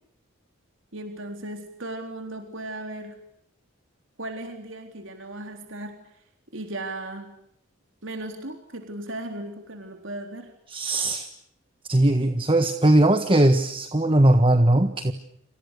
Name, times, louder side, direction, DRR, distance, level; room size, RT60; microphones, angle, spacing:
voice 1, 0.9-3.2 4.2-6.0 6.5-7.3 8.0-10.5, right 1 dB, 65° right, 5 dB, 3.8 m, -36 dB
voice 2, 10.7-11.3 11.9-15.1, right 1 dB, 25° right, 9 dB, 1.5 m, -19 dB
28.5 x 28.5 x 6.6 m, 0.74 s
head